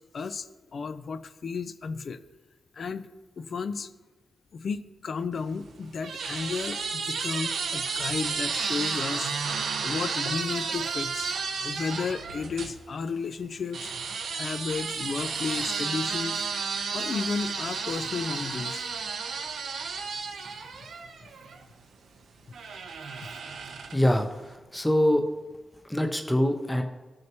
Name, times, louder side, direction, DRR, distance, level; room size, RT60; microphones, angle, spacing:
voice 1, 0.0-2.2 2.7-3.1 3.4-3.9 4.5-11.3 11.6-14.0 14.3-16.4 16.9-18.8, left 5 dB, 55° left, 12 dB, 0.5 m, -33 dB
sound 1, 5.4-12.8 13.7-21.6 22.5-24.1, right 5 dB, 90° right, 0.8 m, -32 dB
voice 2, 23.9-25.2 25.8-26.8, left 1 dB, 5° left, 4 dB, 0.7 m, -24 dB
15.5 x 6.3 x 3.0 m, 1.2 s
wide cardioid pair, 125°, 0 cm